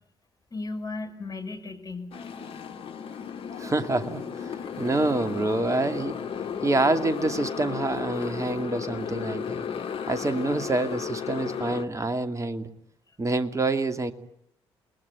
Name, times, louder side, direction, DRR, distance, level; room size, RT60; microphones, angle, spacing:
voice 1, 0.5-2.1 4.6-5.1 6.5-6.6, left 3 dB, 30° left, 4 dB, 5.6 m, -36 dB
Motorcycle, 2.1-11.9, left 7 dB, 50° left, 1.7 m, -34 dB
voice 2, 3.6-6.2 6.6-9.6 10.1-12.7 13.2-14.1, right 2 dB, 25° right, 9 dB, 2.5 m, -27 dB
29.0 x 21.0 x 9.5 m, 0.77 s
figure-of-eight pair, 40°, 12 cm